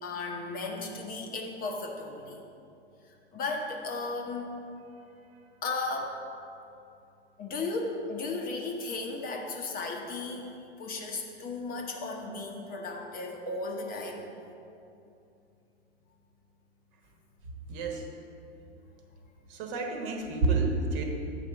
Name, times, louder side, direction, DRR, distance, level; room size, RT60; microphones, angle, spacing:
voice 1, 0.0-2.4 3.1-4.5 5.6-6.2 7.4-10.5 10.8-14.3, left 3 dB, 25° left, 1 dB, 0.8 m, -35 dB
voice 2, 17.7-18.0 19.5-21.0, right 3 dB, 50° right, 2 dB, 1.2 m, -29 dB
7.9 x 4.2 x 5.5 m, 2.7 s
hypercardioid pair, 105°, 34 cm